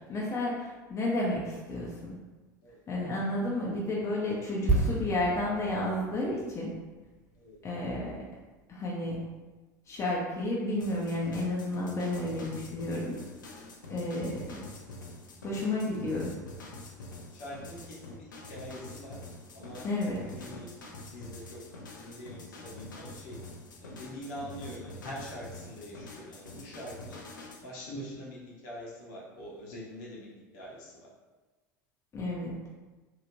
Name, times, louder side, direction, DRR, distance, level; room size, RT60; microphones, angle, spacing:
voice 1, 0.1-2.2 2.9-6.7 7.6-8.2 8.7-9.2 9.9-13.2 13.9-14.6 15.4-16.4 19.8-20.4 32.1-32.6, left 1 dB, 30° left, -4 dB, 0.6 m, -31 dB
sound 1, 4.7-8.3 8.6-8.8, right 2 dB, 30° right, 1.2 m, -32 dB
sound 2, 10.8-27.6, left 2 dB, 80° left, 0.4 m, -46 dB
voice 2, 17.4-17.8 18.1-19.1 19.5-19.8 20.3-20.7 21.1-21.6 22.0-23.3 23.8-27.2 27.6-30.3 30.5-30.8, equal, 65° left, -5 dB, 1.0 m, -43 dB
3.1 x 2.4 x 2.5 m, 1.2 s
figure-of-eight pair, 75°, 10 cm